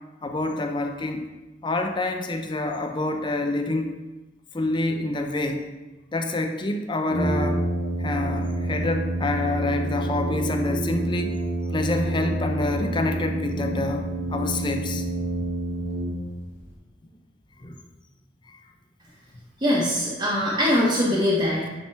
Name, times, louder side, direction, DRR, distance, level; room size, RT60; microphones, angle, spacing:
voice 1, 0.2-1.3 1.6-3.9 4.5-5.6 6.1-7.6 8.0-11.3 11.7-15.0 16.0-16.1 17.6-17.8 18.5-18.6, left 2 dB, 25° left, 5 dB, 0.5 m, -27 dB
Brass instrument, 7.1-16.6, right 1 dB, 45° left, 2.2 m, -28 dB
voice 2, 19.6-21.8, left 1 dB, 25° right, -6 dB, 1.0 m, -22 dB
8.9 x 3.0 x 4.4 m, 1.1 s
head